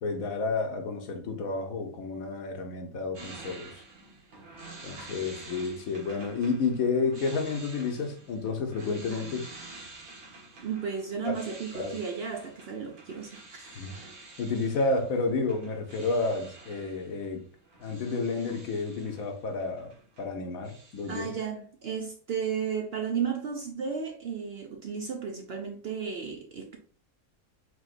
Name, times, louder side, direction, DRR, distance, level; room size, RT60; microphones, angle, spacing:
voice 1, 0.0-3.7 4.8-9.5 11.2-11.3 11.7-12.0 13.7-14.0 14.4-17.4 17.8-19.9 20.2-21.3, left 3 dB, 75° left, 1.3 m, -30 dB
sound 1, 3.1-20.3 20.6-21.4, right 2 dB, 85° right, 2.0 m, -49 dB
voice 2, 10.6-13.7 21.1-26.8, right 6 dB, 60° right, 0.7 m, -34 dB
4.9 x 4.0 x 2.5 m
omnidirectional pair, 1.5 m